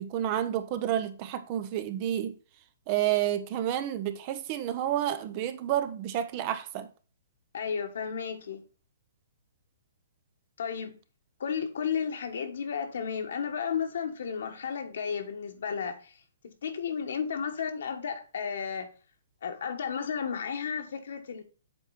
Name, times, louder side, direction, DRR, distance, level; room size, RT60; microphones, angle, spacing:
voice 1, 0.0-2.4 2.9-6.9, right 11 dB, 35° right, 0.7 m, -30 dB
voice 2, 7.5-8.6 10.6-11.0 11.4-16.2 16.4-18.9 19.4-21.5, left 7 dB, 70° left, 1.4 m, -33 dB
7.6 x 4.4 x 4.0 m
hypercardioid pair, 150°, 0 cm